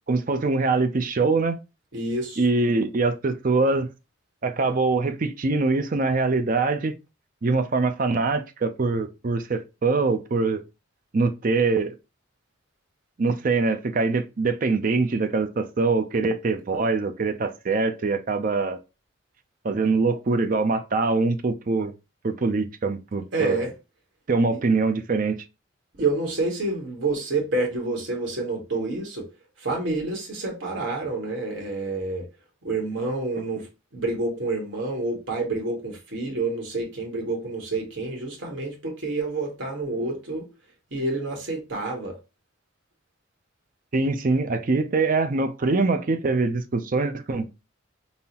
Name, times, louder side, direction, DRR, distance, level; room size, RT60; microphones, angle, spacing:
voice 1, 0.1-1.6 2.4-3.9 4.4-6.9 7.4-10.6 11.1-11.9 13.2-18.8 19.6-21.9 22.2-23.6 24.3-25.4 43.9-47.5, right 3 dB, 40° right, 0.5 m, -23 dB
voice 2, 1.9-2.5 23.3-23.7 24.5-24.6 26.0-29.3 29.6-32.3 32.6-33.7 33.9-40.5 40.9-42.2, right 3 dB, 60° right, 1.1 m, -28 dB
5.4 x 2.0 x 2.8 m
head